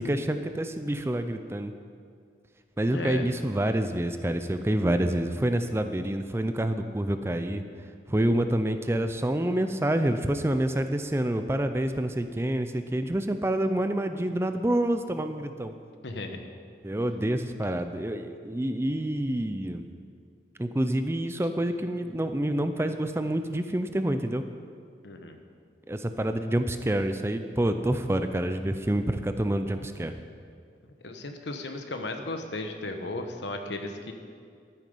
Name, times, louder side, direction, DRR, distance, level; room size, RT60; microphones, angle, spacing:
voice 1, 0.0-1.7 2.8-7.6 8.1-15.7 16.8-19.9 20.6-24.4 25.9-30.2, right 1 dB, 15° right, 8 dB, 0.4 m, -27 dB
voice 2, 2.9-3.3 8.2-8.3 16.0-16.4 25.0-25.4 31.0-34.1, left 2 dB, 80° left, 5 dB, 1.1 m, -35 dB
12.0 x 9.2 x 5.4 m, 2.2 s
head